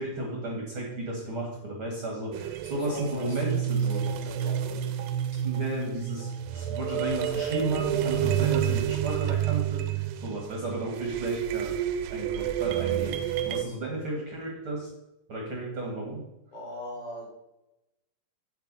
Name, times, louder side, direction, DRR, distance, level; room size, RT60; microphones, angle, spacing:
voice 1, 0.0-4.0 5.4-11.7 12.1-14.9 15.3-16.2, right 1 dB, 45° right, -1 dB, 2.0 m, -33 dB
sound 1, 2.3-13.6, right 10 dB, 85° right, 2.3 m, -29 dB
voice 2, 2.8-4.8 16.5-17.3, left 1 dB, 60° left, -4 dB, 5.1 m, -40 dB
8.8 x 8.1 x 4.0 m, 0.93 s
omnidirectional pair, 4.1 m